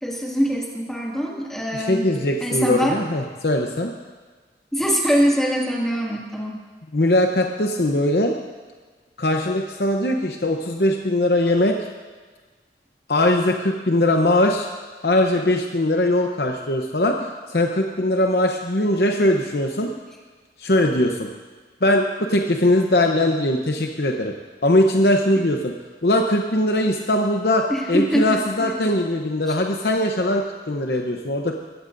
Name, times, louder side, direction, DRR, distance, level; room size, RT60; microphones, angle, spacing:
voice 1, 0.0-2.0 2.4-3.0 4.7-6.6 27.7-29.0 29.5-29.6, equal, 5° left, -3 dB, 2.2 m, -23 dB
voice 2, 1.7-3.9 6.9-8.3 9.2-11.8 13.1-14.7 15.0-19.9 20.6-21.3 21.8-24.3 24.6-25.7 26.0-31.5, left 1 dB, 60° left, 2 dB, 0.9 m, -20 dB
22.0 x 16.0 x 2.7 m, 1.4 s
head